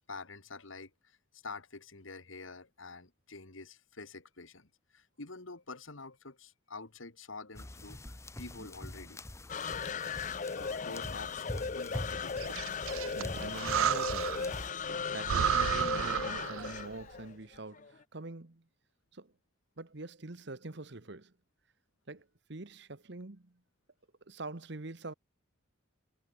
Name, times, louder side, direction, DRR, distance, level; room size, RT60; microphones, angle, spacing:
voice 1, 0.1-9.2 9.5-9.8 10.5-12.4, left 3 dB, 70° left, 2.1 m, -47 dB
sound 1, 7.5-14.7, left 1 dB, 15° left, 0.8 m, -44 dB
sound 2, 9.5-17.9, left 5 dB, 35° left, 0.5 m, -37 dB
Breathing, 12.4-14.6 14.9-15.0 15.2-16.9, right 9 dB, 75° right, 0.4 m, -32 dB
voice 2, 13.1-14.7 15.1-18.6 19.1-19.3 19.8-21.3 22.1-23.5 24.3-25.1, right 2 dB, 55° right, 1.2 m, -44 dB
head